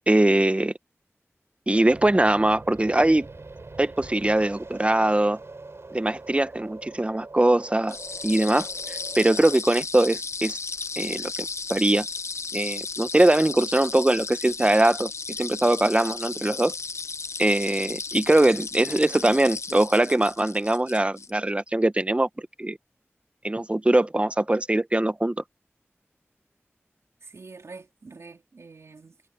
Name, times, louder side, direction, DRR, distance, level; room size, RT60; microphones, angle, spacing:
voice 1, 0.1-0.7 1.7-3.3 3.8-5.4 5.9-8.0 8.2-10.6 11.0-12.1 12.5-15.1 15.4-16.7 17.4-22.3 22.6-22.8 23.4-25.4, right 1 dB, 25° right, 1.0 m, -22 dB
sound 1, 1.7-9.6, right 3 dB, 65° right, 5.2 m, -43 dB
sound 2, 7.9-21.3, left 4 dB, 80° left, 0.6 m, -34 dB
voice 2, 27.2-29.2, right 4 dB, 80° right, 3.2 m, -45 dB
wide cardioid pair, 45°, 5 cm